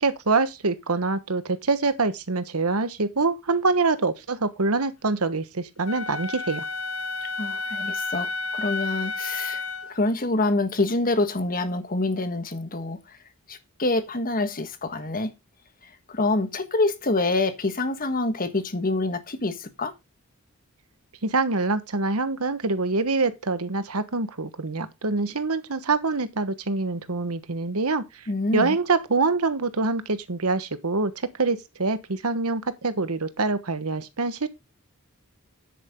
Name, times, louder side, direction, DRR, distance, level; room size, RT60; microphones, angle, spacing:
voice 1, 0.0-6.6 21.2-28.2 28.5-31.1 31.4-34.5, right 3 dB, 80° right, 1.3 m, -25 dB
Wind instrument woodwind instrument, 5.9-9.9, left 3 dB, 65° left, 1.2 m, -31 dB
voice 2, 7.4-9.6 9.9-13.2 13.5-15.3 16.1-19.9 28.3-28.8, left 2 dB, 40° left, 1.5 m, -26 dB
10.0 x 8.4 x 3.7 m
head